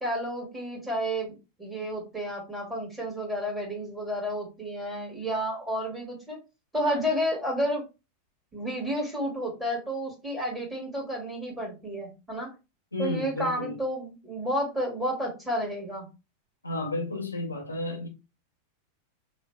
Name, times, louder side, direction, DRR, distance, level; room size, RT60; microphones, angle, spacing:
voice 1, 0.0-6.4 6.7-7.9 8.5-12.5 13.0-16.1, equal, 10° right, 2.1 m, -31 dB
voice 2, 12.9-13.8 16.6-18.1, left 2 dB, 85° left, 0.8 m, -32 dB
6.2 x 2.4 x 2.3 m
figure-of-eight pair, 90°, 0 cm